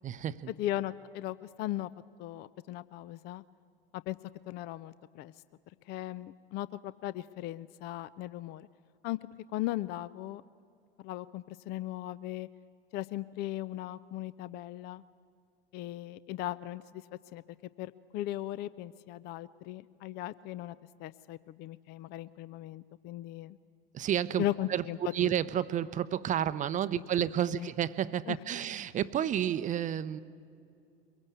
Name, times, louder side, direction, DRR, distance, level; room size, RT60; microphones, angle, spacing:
voice 1, 0.0-0.5 23.9-24.8 25.1-30.2, right 10 dB, 25° right, 14 dB, 0.7 m, -31 dB
voice 2, 0.6-1.9 2.2-3.4 3.9-4.2 4.5-5.3 5.9-8.7 9.0-9.2 9.5-10.4 11.0-12.5 12.9-15.0 15.7-17.0 17.3-17.4 17.8-23.6 24.4-25.3 27.5-27.7 28.3-28.4, left 14 dB, 35° left, 18 dB, 0.5 m, -37 dB
23.0 x 22.0 x 8.3 m, 2.4 s
figure-of-eight pair, 80°, 30 cm